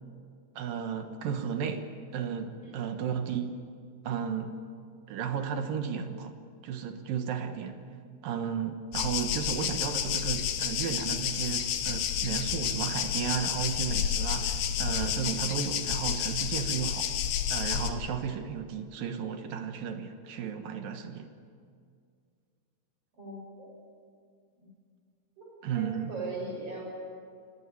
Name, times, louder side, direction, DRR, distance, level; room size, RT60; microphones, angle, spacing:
voice 1, 0.6-3.6 4.0-4.5 5.1-6.3 6.6-7.8 8.2-17.1 17.5-21.3 25.6-26.1, right 7 dB, 65° right, 7 dB, 2.8 m, -34 dB
sound 1, 8.9-17.9, left 9 dB, 85° left, 3.4 m, -30 dB
voice 2, 23.2-23.7 24.6-24.7 25.4-25.5 25.7-26.9, right 3 dB, 35° right, -1 dB, 7.7 m, -39 dB
24.0 x 18.0 x 9.9 m, 2.2 s
omnidirectional pair, 4.7 m